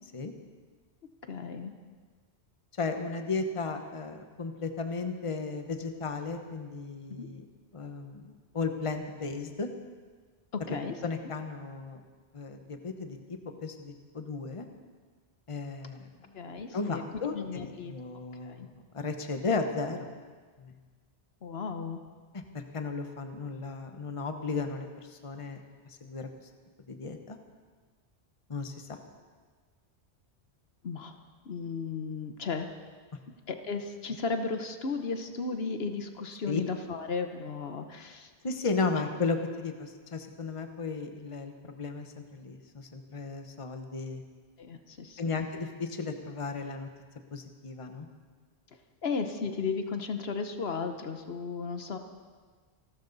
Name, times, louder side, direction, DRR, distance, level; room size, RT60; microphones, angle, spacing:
voice 1, 1.3-1.7 7.1-7.3 10.5-11.0 16.3-17.0 17.3-17.9 18.4-18.7 21.4-22.0 30.8-31.1 31.4-32.7 33.5-38.3 44.6-45.2 49.0-52.0, left 4 dB, 70° left, 7 dB, 1.2 m, -35 dB
voice 2, 2.8-7.4 7.7-9.7 10.7-10.8 11.0-12.0 12.3-14.7 15.5-16.4 16.7-20.1 20.6-20.7 22.3-25.6 26.0-26.3 26.9-27.4 28.5-29.0 36.5-36.6 38.4-44.2 45.2-46.9 47.3-48.1, left 4 dB, 30° left, 6 dB, 1.1 m, -35 dB
27.5 x 12.5 x 4.0 m, 1.5 s
omnidirectional pair, 1.1 m